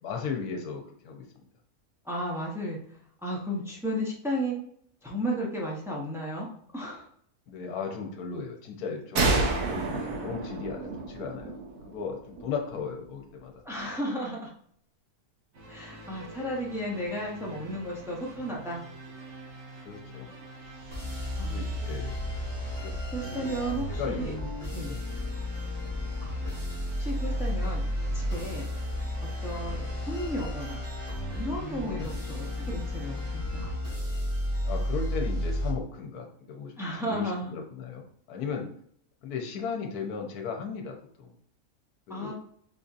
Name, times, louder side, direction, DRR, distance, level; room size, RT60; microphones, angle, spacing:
voice 1, 0.0-1.3 7.5-11.5 11.8-13.6 19.8-20.3 21.4-22.2 22.8-22.9 23.2-23.5 23.9-24.3 24.8-25.0 25.8-26.2 29.7-30.0 31.9-32.1 34.6-38.7 39.2-41.3 42.1-42.3, left 5 dB, 80° left, 2 dB, 1.2 m, -36 dB
voice 2, 2.0-4.5 5.0-6.5 6.7-7.1 13.6-14.5 15.7-18.8 21.4-21.6 23.1-24.3 24.7-25.0 27.0-27.8 28.1-28.6 29.4-30.8 31.3-33.6 36.8-37.5 42.1-42.3, equal, 5° right, -4 dB, 0.4 m, -33 dB
sound 1, 9.2-12.7, right 3 dB, 70° right, 1.1 m, -29 dB
sound 2, 15.5-33.7, equal, 55° right, 1.1 m, -41 dB
sound 3, 20.9-35.7, left 1 dB, 90° right, 2.3 m, -33 dB
4.9 x 2.7 x 2.4 m, 0.63 s
omnidirectional pair, 1.6 m